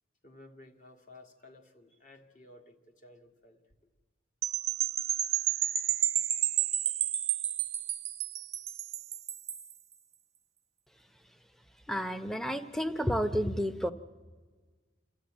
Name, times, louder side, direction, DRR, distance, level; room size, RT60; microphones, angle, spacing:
voice 1, 0.2-3.6, left 2 dB, 45° left, 4 dB, 1.9 m, -55 dB
sound 1, 4.4-9.7, right 11 dB, 35° right, 0.6 m, -31 dB
voice 2, 11.9-13.9, equal, ahead, 10 dB, 0.8 m, -31 dB
28.0 x 13.0 x 8.8 m, 1.5 s
head